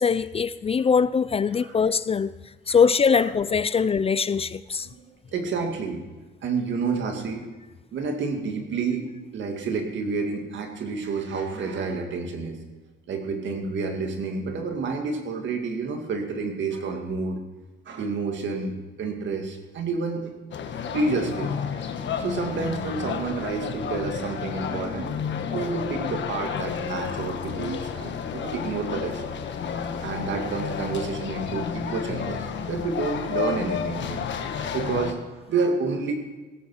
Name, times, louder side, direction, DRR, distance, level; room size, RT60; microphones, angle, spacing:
voice 1, 0.0-2.3 2.7-4.9, left 6 dB, 30° left, 0.4 m, -22 dB
voice 2, 5.3-6.0 6.4-7.4 7.9-9.1 9.3-12.6 13.1-17.4 17.9-20.3 20.9-21.5 21.8-25.1 25.5-29.2 29.9-32.4 32.7-34.3 34.7-35.2 35.5-36.1, right 4 dB, 70° right, 2.2 m, -29 dB
sound 1, 20.5-35.1, left 7 dB, 65° left, 1.4 m, -31 dB
17.0 x 8.5 x 5.7 m
cardioid pair, 90°, 20 cm